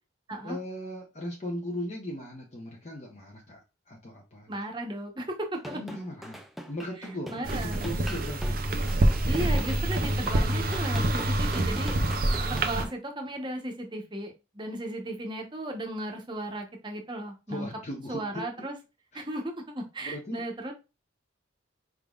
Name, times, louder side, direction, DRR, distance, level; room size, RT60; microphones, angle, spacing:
voice 1, 0.4-4.6 5.7-6.4 6.7-8.6 17.5-18.5 19.1-19.2 20.0-20.4, left 1 dB, 35° left, 0.8 m, -38 dB
voice 2, 4.5-5.8 7.3-7.9 9.3-12.0 12.5-17.7 18.1-18.7 19.1-20.7, right 1 dB, 25° right, 0.9 m, -35 dB
sound 1, 5.5-12.9, equal, ahead, 0.4 m, -42 dB
sound 2, 7.4-12.8, right 1 dB, 50° right, 0.5 m, -26 dB
4.9 x 3.7 x 2.3 m
head